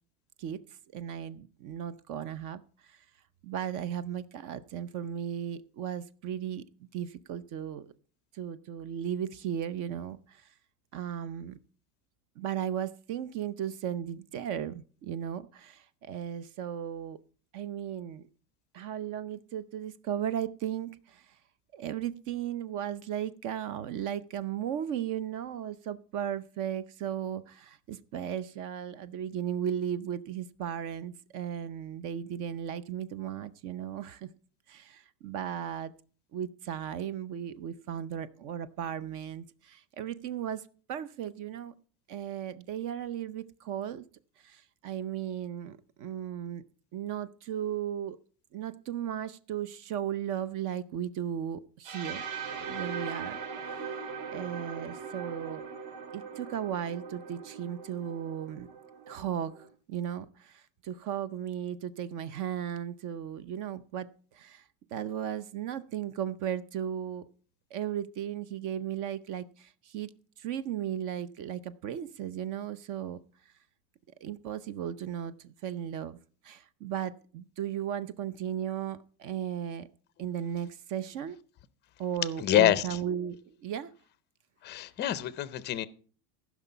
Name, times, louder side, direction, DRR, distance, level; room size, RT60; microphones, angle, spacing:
voice 1, 0.9-3.0 3.4-6.6 6.9-7.9 8.3-10.5 10.9-11.6 12.4-17.2 17.5-18.3 18.7-21.4 21.7-34.3 34.7-35.9 36.3-41.7 42.1-44.0 44.4-46.6 46.9-48.2 48.5-53.4 53.6-54.0 54.3-55.7 56.1-58.7 59.1-64.6 64.9-67.2 67.7-70.1 70.4-73.2 74.2-76.2 76.4-79.9 80.2-81.4 82.0-83.9, right 9 dB, 40° right, 0.7 m, -36 dB
sound 1, 51.8-59.7, right 6 dB, 60° right, 3.6 m, -40 dB
voice 2, 82.4-82.8 84.6-85.9, left 14 dB, 25° left, 0.5 m, -26 dB
15.0 x 6.1 x 5.6 m
supercardioid pair, 155°, 47 cm